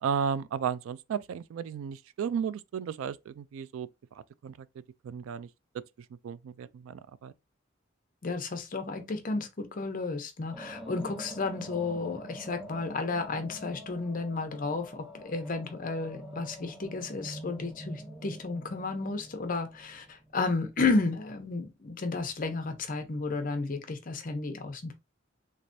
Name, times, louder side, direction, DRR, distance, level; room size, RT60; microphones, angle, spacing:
voice 1, 0.0-3.9 4.2-4.7 5.0-5.5 5.7-5.8 6.2-7.3, right 7 dB, 85° right, 0.3 m, -34 dB
voice 2, 8.2-24.9, left 3 dB, 45° left, 0.7 m, -32 dB
sound 1, 10.5-20.6, equal, ahead, 0.7 m, -45 dB
3.3 x 3.2 x 2.6 m
head